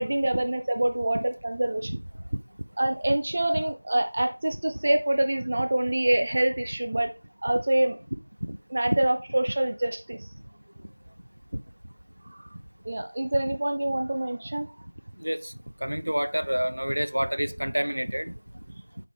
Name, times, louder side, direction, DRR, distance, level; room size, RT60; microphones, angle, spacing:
voice 1, 0.0-2.0 2.8-7.1 7.4-8.0 8.7-10.3 12.3-12.4 12.9-14.7, right 1 dB, 20° right, 0.3 m, -26 dB
voice 2, 15.2-15.5 15.8-18.3, equal, 60° right, 0.6 m, -28 dB
8.8 x 4.0 x 3.4 m
figure-of-eight pair, 180°, 0 cm